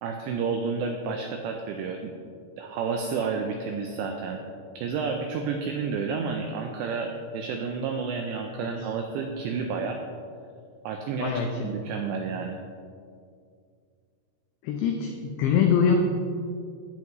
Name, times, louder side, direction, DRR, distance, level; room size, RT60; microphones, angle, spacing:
voice 1, 0.0-2.1 2.6-4.4 4.8-10.0 10.8-11.3 11.6-12.6, right 5 dB, 90° right, 4 dB, 2.5 m, -30 dB
voice 2, 11.2-11.7 14.6-16.0, left 7 dB, 90° left, 3 dB, 2.4 m, -24 dB
16.0 x 7.9 x 3.0 m, 2.3 s
omnidirectional pair, 5.8 m